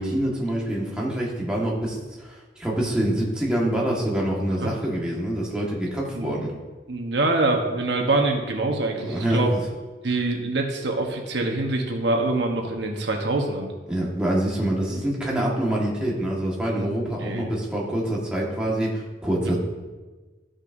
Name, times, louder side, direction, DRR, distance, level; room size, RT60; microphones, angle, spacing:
voice 1, 0.0-6.5 9.0-9.6 13.9-19.6, right 1 dB, 5° right, -4 dB, 1.5 m, -26 dB
voice 2, 6.9-9.5 10.0-13.7 16.8-17.5 19.4-19.6, right 2 dB, 75° right, 2 dB, 1.1 m, -25 dB
13.5 x 6.4 x 2.6 m, 1.3 s
head